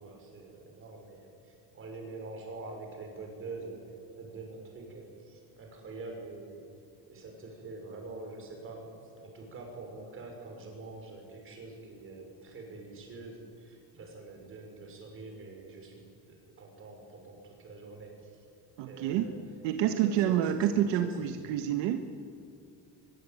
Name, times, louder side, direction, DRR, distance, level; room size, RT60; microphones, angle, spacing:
voice 1, 0.0-6.7 7.1-18.5 18.8-19.4 19.8-21.5, right 3 dB, 30° right, 2 dB, 6.0 m, -45 dB
voice 2, 18.8-19.3 19.6-22.0, right 10 dB, 75° right, 7 dB, 1.7 m, -28 dB
23.5 x 22.5 x 9.2 m, 2.4 s
cardioid pair, 180°, 44 cm